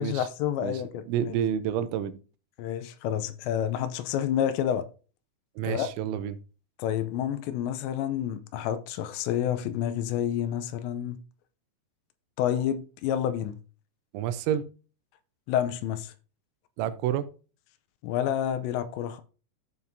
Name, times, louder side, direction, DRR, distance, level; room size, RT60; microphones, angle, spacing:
voice 1, 0.0-1.3 2.6-4.8 5.6-5.9 6.8-11.2 12.4-13.6 15.5-16.1 18.0-19.2, left 10 dB, 80° left, 2.9 m, -29 dB
voice 2, 1.1-2.2 5.6-6.4 14.1-14.6 16.8-17.3, right 9 dB, 85° right, 3.1 m, -29 dB
15.0 x 5.6 x 2.7 m
omnidirectional pair, 5.3 m